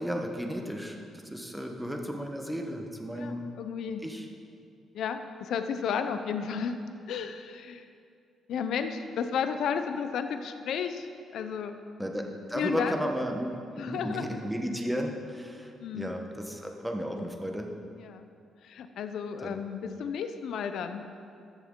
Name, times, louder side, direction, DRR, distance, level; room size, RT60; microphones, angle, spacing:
voice 1, 0.0-3.5 4.0-4.3 12.0-17.7 19.4-19.6, equal, 5° right, 2 dB, 1.1 m, -34 dB
voice 2, 3.2-4.0 4.9-6.8 7.1-7.9 8.5-11.1 11.3-11.8 12.5-13.1 13.8-14.3 15.8-16.1 18.0-18.3 18.6-21.1, left 7 dB, 75° left, 8 dB, 0.6 m, -33 dB
13.5 x 7.0 x 3.8 m, 2.4 s
cardioid pair, 90°, 0 cm